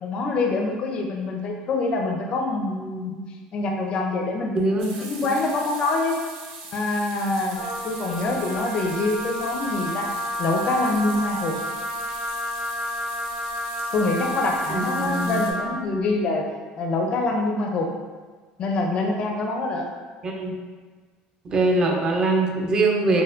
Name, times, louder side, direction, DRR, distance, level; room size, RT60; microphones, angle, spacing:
voice 1, 0.0-3.2 3.5-6.2 6.7-10.1 10.4-11.6 13.9-16.4 16.8-17.9 18.6-19.9, left 2 dB, 40° left, 1 dB, 0.4 m, -25 dB
sound 1, 4.8-15.5, right 4 dB, 75° right, 0.6 m, -41 dB
Wind instrument woodwind instrument, 7.5-15.8, left 1 dB, 80° left, 0.7 m, -31 dB
voice 2, 14.7-15.4 20.2-20.5 21.4-23.2, right 2 dB, 30° right, 1 dB, 0.4 m, -22 dB
4.2 x 2.1 x 2.4 m, 1.4 s
cardioid pair, 145°, 3 cm